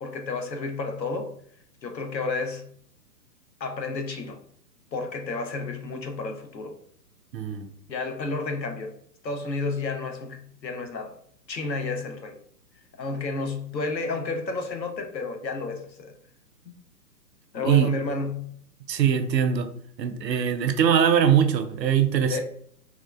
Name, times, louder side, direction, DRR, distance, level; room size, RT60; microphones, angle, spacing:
voice 1, 0.0-1.3 1.8-2.6 3.6-4.4 4.9-6.7 7.9-8.9 9.2-11.1 11.5-12.4 13.0-16.1 17.5-18.5 22.3-22.4, left 3 dB, 85° left, 5 dB, 0.8 m, -31 dB
voice 2, 7.3-7.7 17.6-17.9 18.9-19.7 20.0-22.4, right 8 dB, 80° right, 9 dB, 0.6 m, -22 dB
3.5 x 2.4 x 2.3 m, 0.62 s
figure-of-eight pair, 120°, 50 cm